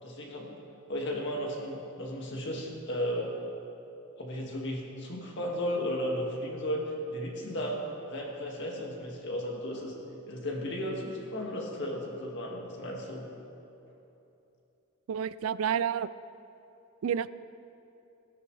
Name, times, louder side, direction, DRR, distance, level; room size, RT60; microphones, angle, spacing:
voice 1, 0.0-0.6 0.9-3.3 4.2-13.3, equal, 60° left, -1 dB, 2.1 m, -35 dB
voice 2, 15.1-16.1 17.0-17.3, right 8 dB, 85° right, 17 dB, 0.3 m, -29 dB
17.5 x 12.0 x 3.3 m, 2.9 s
head